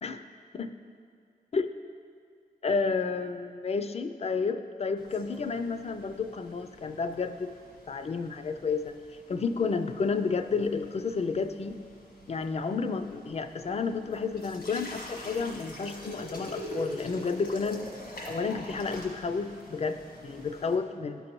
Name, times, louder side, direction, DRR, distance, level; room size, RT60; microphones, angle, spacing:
voice 1, 2.6-7.5 7.9-9.0 9.3-11.8 12.3-17.9 18.3-21.2, left 4 dB, 45° left, 9 dB, 0.4 m, -31 dB
sound 1, 5.0-20.8, equal, 85° left, 1.5 m, -46 dB
12.0 x 5.3 x 3.0 m, 2.2 s
wide cardioid pair, 95°, 15 cm